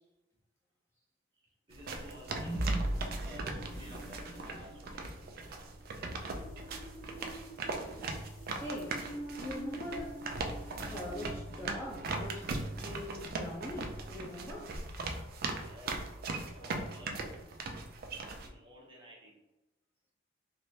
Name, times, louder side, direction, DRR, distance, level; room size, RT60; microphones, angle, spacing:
voice 1, 1.4-5.2 15.5-16.1 16.5-17.3 18.4-19.4, equal, 25° right, -3 dB, 0.8 m, -54 dB
sound 1, 1.7-18.5, right 3 dB, 55° right, 0.4 m, -40 dB
sound 2, 2.0-12.6, right 1 dB, 80° left, 1.3 m, -42 dB
voice 2, 8.6-9.0 9.4-10.2 10.9-14.8, left 1 dB, 15° left, -5 dB, 0.6 m, -42 dB
3.2 x 2.6 x 2.7 m, 1.0 s
head